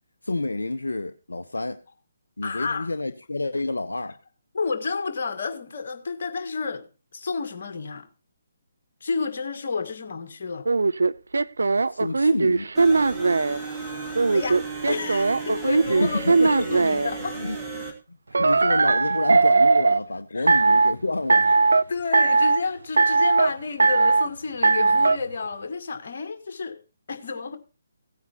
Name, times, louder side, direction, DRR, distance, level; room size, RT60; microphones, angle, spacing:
voice 1, 0.2-1.8 2.4-4.2 11.9-12.7 16.0-16.9 17.4-17.6 18.1-21.5, left 2 dB, 70° left, 0.7 m, -29 dB
voice 2, 2.4-2.9 4.5-6.9 7.1-8.1 9.0-10.7 14.3-17.4 20.3-20.6 21.5-21.6 21.9-26.8 27.1-27.6, left 4 dB, 45° left, 2.0 m, -31 dB
sound 1, 10.6-13.6 14.1-17.1 18.3-20.0 20.5-20.9 21.3-21.8 22.1-22.6 23.0-23.5 23.8-24.3 24.6-25.2, right 3 dB, 65° right, 0.5 m, -19 dB
sound 2, 12.7-17.9, right 4 dB, 10° right, 2.8 m, -34 dB
17.0 x 9.5 x 3.0 m
figure-of-eight pair, 140°, 0 cm